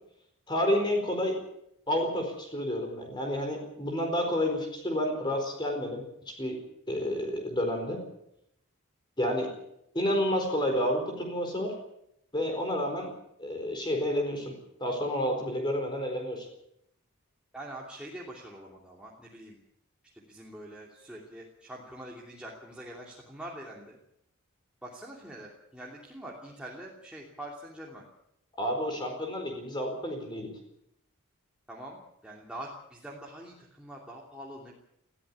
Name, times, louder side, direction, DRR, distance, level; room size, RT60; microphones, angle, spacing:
voice 1, 0.5-1.4 1.9-6.6 6.9-8.0 9.2-9.5 9.9-11.7 12.3-13.1 13.4-14.5 14.8-16.5 28.6-30.5, left 1 dB, 20° left, 2 dB, 4.5 m, -30 dB
voice 2, 17.5-19.6 20.1-24.0 24.8-28.1 31.7-34.7, right 1 dB, 5° right, -4 dB, 2.9 m, -44 dB
20.5 x 15.5 x 8.5 m, 0.76 s
head